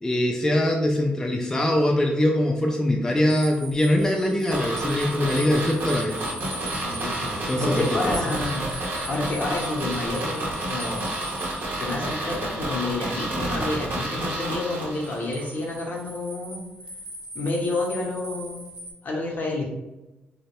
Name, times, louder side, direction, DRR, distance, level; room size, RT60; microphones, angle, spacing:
voice 1, 0.0-6.1 7.5-8.1, left 1 dB, 15° left, 1 dB, 0.3 m, -22 dB
sound 1, 3.1-12.4 14.9-18.9, right 1 dB, 25° right, 0.7 m, -40 dB
sound 2, 4.5-15.5 15.7-15.8, right 1 dB, 65° right, 0.6 m, -30 dB
voice 2, 6.8-8.7 9.1-11.1 11.8-16.7 17.3-18.6 19.0-19.6, left 2 dB, 55° left, 0 dB, 0.7 m, -29 dB
2.1 x 2.0 x 2.9 m, 1.0 s
cardioid pair, 65°, 4 cm